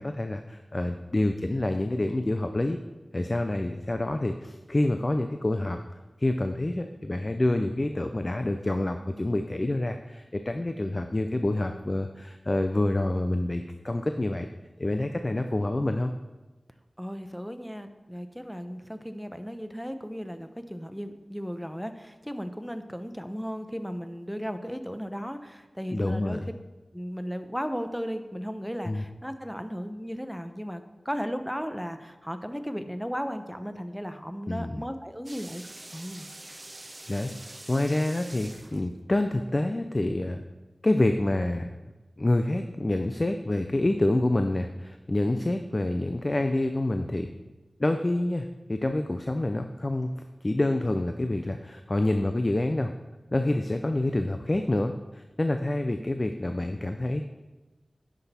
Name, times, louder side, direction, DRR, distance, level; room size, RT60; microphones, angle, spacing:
voice 1, 0.0-2.8 3.1-5.8 6.2-14.5 14.8-16.1 25.9-26.5 28.9-29.0 34.5-34.8 37.1-40.4 40.8-41.7 42.2-47.3 47.8-50.1 50.4-52.9 53.3-57.3, left 1 dB, 35° left, 7 dB, 0.5 m, -27 dB
voice 2, 17.0-26.4 26.9-35.6 35.9-36.3, equal, ahead, 8 dB, 0.7 m, -35 dB
sound 1, 35.3-39.1, right 2 dB, 35° right, 0.6 m, -45 dB
10.5 x 6.1 x 4.2 m, 1.1 s
wide cardioid pair, 65°, 0 cm